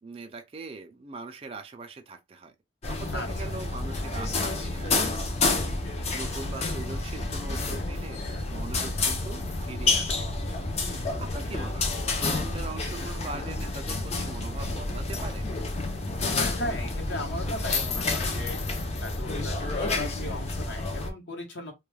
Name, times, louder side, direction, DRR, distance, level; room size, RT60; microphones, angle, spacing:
voice 1, 0.0-2.5 2.9-5.3 5.7-8.2 8.5-10.3 10.7-11.9 12.2-15.5, right 3 dB, 30° right, 0.4 m, -41 dB
sound 1, 2.8-21.1, left 3 dB, 35° left, 0.5 m, -29 dB
voice 2, 3.1-3.6 10.8-11.2 16.6-18.6 19.0-21.7, left 1 dB, 65° left, 0.9 m, -37 dB
2.3 x 2.2 x 3.1 m
head